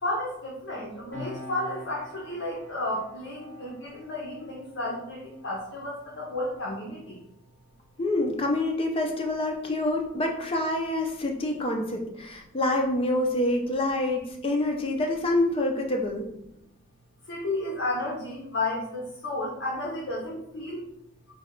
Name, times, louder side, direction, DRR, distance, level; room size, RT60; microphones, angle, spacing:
voice 1, 0.0-7.2 17.3-20.8, left 2 dB, 60° left, -5 dB, 0.8 m, -32 dB
Piano, 1.1-8.1 8.4-8.6, left 1 dB, 10° left, 1.3 m, -47 dB
voice 2, 8.0-16.3, left 1 dB, 25° left, 2 dB, 0.4 m, -27 dB
3.4 x 2.3 x 3.5 m, 0.81 s
head